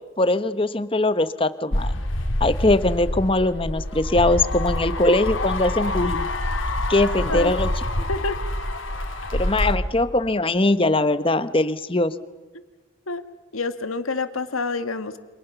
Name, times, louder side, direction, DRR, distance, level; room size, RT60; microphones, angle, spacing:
voice 1, 0.2-1.9 2.4-6.3 6.9-7.7 9.3-12.1, left 2 dB, 25° left, 13 dB, 1.0 m, -21 dB
sound 1, 1.7-9.7, left 1 dB, 65° left, 2.6 m, -26 dB
voice 2, 8.1-8.4 13.1-13.2 13.5-15.2, left 3 dB, 85° left, 10 dB, 1.7 m, -27 dB
29.5 x 27.0 x 7.0 m, 1.3 s
head